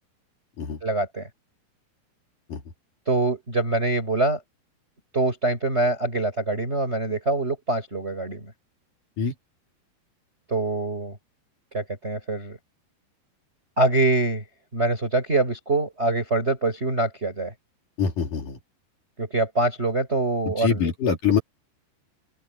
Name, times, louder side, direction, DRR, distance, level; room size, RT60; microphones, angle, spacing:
voice 1, 0.8-1.3 3.1-4.4 5.1-8.5 10.5-11.2 11.7-12.6 13.8-14.4 14.7-17.5 19.2-20.9, right 2 dB, 15° right, 6.0 m, -24 dB
voice 2, 18.0-18.6 20.6-21.4, left 6 dB, 50° left, 4.3 m, -24 dB
open air
omnidirectional pair, 5.2 m